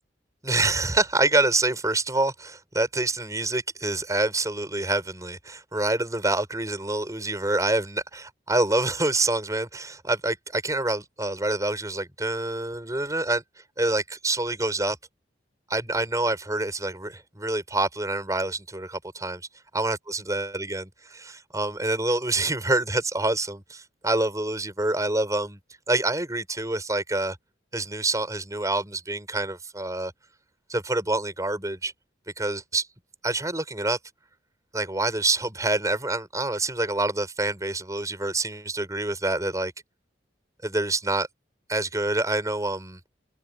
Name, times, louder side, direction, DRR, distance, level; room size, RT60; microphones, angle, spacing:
voice 1, 0.4-13.4 13.8-15.0 15.7-19.4 19.7-25.6 25.9-27.4 27.7-30.1 30.7-31.9 32.4-32.9 33.2-34.0 34.7-39.7 40.6-41.3 41.7-43.0, right 2 dB, 20° right, 7.5 m, -26 dB
head